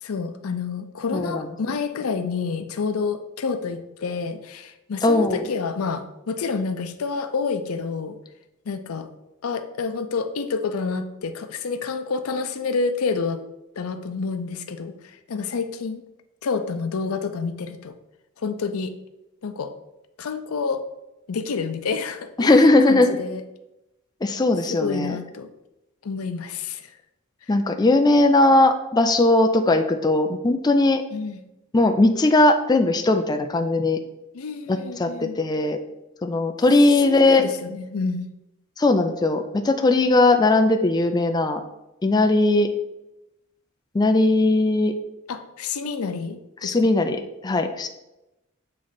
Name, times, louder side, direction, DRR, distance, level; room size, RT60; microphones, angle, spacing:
voice 1, 0.0-8.2 8.7-9.1 9.4-13.4 13.8-14.9 15.3-16.0 16.4-17.9 18.4-18.9 19.4-19.7 20.2-20.8 21.3-23.4 24.7-25.5 26.0-26.9 31.1-31.4 34.3-35.4 37.0-38.2 45.3-46.9, left 4 dB, 90° left, 9 dB, 0.5 m, -28 dB
voice 2, 1.1-1.5 5.0-5.5 22.4-23.2 24.2-25.2 27.5-31.0 31.7-34.0 34.7-35.8 36.2-37.4 38.8-41.6 42.0-42.7 43.9-44.9 46.6-47.9, left 2 dB, 20° left, 5 dB, 0.4 m, -19 dB
7.7 x 3.2 x 4.0 m, 0.92 s
head